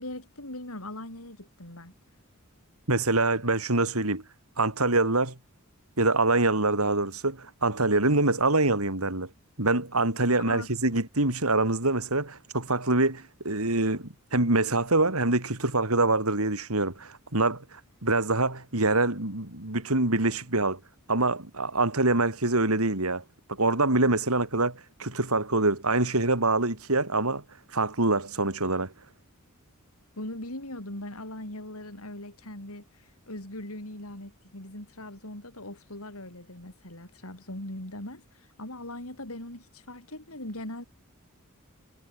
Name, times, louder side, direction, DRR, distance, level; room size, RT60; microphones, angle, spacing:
voice 1, 0.0-1.9 10.4-10.7 30.1-40.8, left 1 dB, 80° left, 7.7 m, -40 dB
voice 2, 2.9-4.2 4.6-5.3 6.0-9.3 9.6-20.8 21.1-23.2 23.5-27.4 27.7-28.9, right 2 dB, 85° right, 4.8 m, -25 dB
head